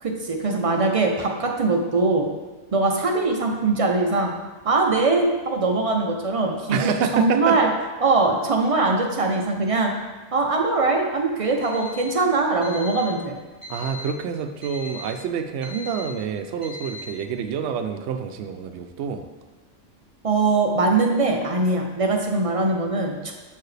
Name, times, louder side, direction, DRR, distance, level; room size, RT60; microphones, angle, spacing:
voice 1, 0.0-2.3 2.7-4.3 4.6-7.7 8.0-9.9 10.3-13.4 20.2-23.3, right 3 dB, 50° right, 2 dB, 0.4 m, -22 dB
voice 2, 6.7-7.7 13.7-19.2, right 7 dB, 70° right, 6 dB, 0.8 m, -27 dB
Alarm, 11.4-12.1 12.6-13.1 13.6-14.1 14.6-15.1 15.6-16.1 16.6-17.1, left 2 dB, 30° left, 2.2 m, -38 dB
7.1 x 4.7 x 3.3 m, 1.3 s
omnidirectional pair, 1.3 m